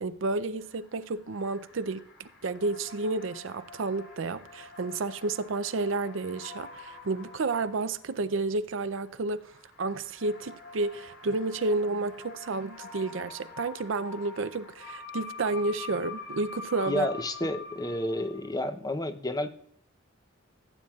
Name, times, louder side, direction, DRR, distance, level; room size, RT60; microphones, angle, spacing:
voice 1, 0.0-9.5 9.8-17.1, right 3 dB, 70° right, 0.5 m, -31 dB
sound 1, 0.6-8.4 8.9-18.7, left 4 dB, 85° left, 3.2 m, -46 dB
voice 2, 16.9-19.5, left 1 dB, 20° left, 0.7 m, -30 dB
16.0 x 9.1 x 2.4 m
head